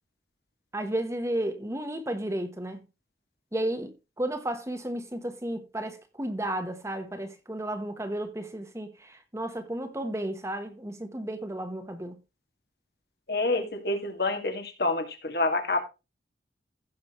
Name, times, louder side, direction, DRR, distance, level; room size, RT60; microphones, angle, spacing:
voice 1, 0.7-2.8 3.5-12.2, right 1 dB, 15° right, 1.2 m, -33 dB
voice 2, 13.3-15.8, left 2 dB, 60° left, 2.2 m, -27 dB
15.5 x 6.1 x 3.1 m
head